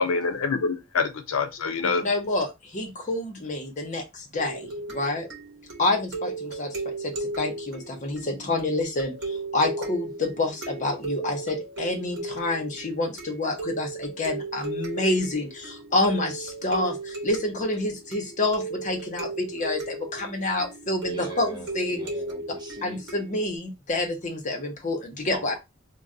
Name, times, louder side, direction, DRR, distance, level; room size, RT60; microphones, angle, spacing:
voice 1, 0.0-2.0, left 4 dB, 85° left, 0.5 m, -25 dB
voice 2, 2.0-5.3 5.8-22.0 22.8-25.5, left 2 dB, 35° left, 0.8 m, -28 dB
sound 1, 4.4-23.6, right 3 dB, 60° right, 1.0 m, -36 dB
voice 3, 21.1-23.0 25.3-25.6, right 1 dB, 20° right, 0.6 m, -40 dB
2.3 x 2.2 x 3.6 m
head